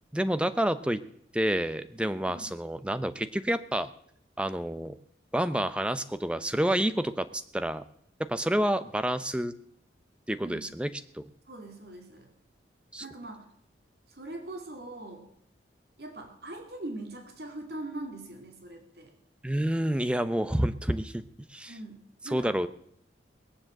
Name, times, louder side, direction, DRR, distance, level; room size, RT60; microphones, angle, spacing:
voice 1, 0.1-1.0 1.3-3.9 4.4-5.0 5.3-7.8 8.2-9.5 10.3-11.2 12.9-13.0 19.4-21.2 21.5-21.7 22.3-22.7, right 1 dB, 5° right, 11 dB, 0.6 m, -29 dB
voice 2, 2.3-2.6 8.6-8.8 10.4-10.7 11.5-12.3 13.0-13.5 14.1-15.3 16.0-19.1 21.7-22.6, right 2 dB, 60° right, 3 dB, 2.5 m, -42 dB
19.5 x 7.4 x 7.8 m, 0.68 s
head